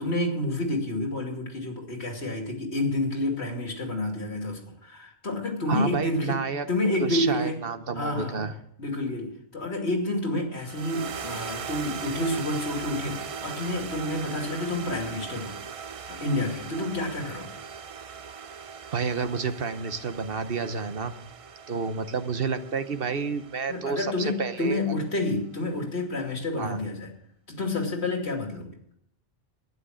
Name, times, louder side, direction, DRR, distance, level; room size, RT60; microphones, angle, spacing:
voice 1, 0.0-7.6 7.9-8.4 8.8-15.6 16.1-17.6 23.7-27.1 27.5-28.8, left 1 dB, 85° left, 2 dB, 2.9 m, -29 dB
voice 2, 5.7-6.7 7.0-8.5 18.9-21.1 21.7-24.8 26.6-26.8, right 5 dB, 60° right, 10 dB, 1.1 m, -30 dB
sound 1, 10.6-25.0, right 6 dB, 45° right, 0.5 m, -40 dB
12.0 x 9.9 x 6.3 m, 0.71 s
omnidirectional pair, 1.1 m